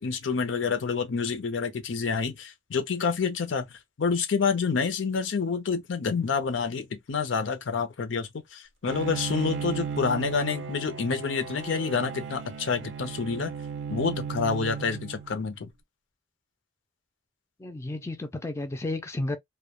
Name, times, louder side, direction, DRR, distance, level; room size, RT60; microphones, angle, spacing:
voice 1, 0.0-3.7 4.0-13.5 13.9-15.7, left 5 dB, 85° left, 0.5 m, -28 dB
Bowed string instrument, 8.9-15.5, right 6 dB, 75° right, 0.4 m, -36 dB
voice 2, 17.6-19.4, left 2 dB, 15° left, 0.3 m, -32 dB
2.1 x 2.1 x 2.8 m
head